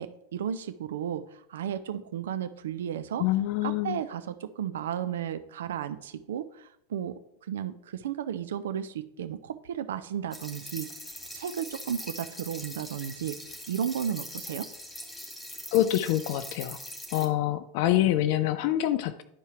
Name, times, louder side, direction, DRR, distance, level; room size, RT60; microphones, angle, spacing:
voice 1, 0.0-3.3 3.6-10.9 11.3-14.7, right 9 dB, 65° right, 12 dB, 0.3 m, -34 dB
voice 2, 3.2-4.0 15.7-16.8 17.1-19.2, left 13 dB, 50° left, 11 dB, 0.3 m, -26 dB
sound 1, 10.3-17.2, left 1 dB, 10° left, 1.9 m, -42 dB
11.0 x 4.5 x 3.3 m, 0.77 s
figure-of-eight pair, 85°, 0 cm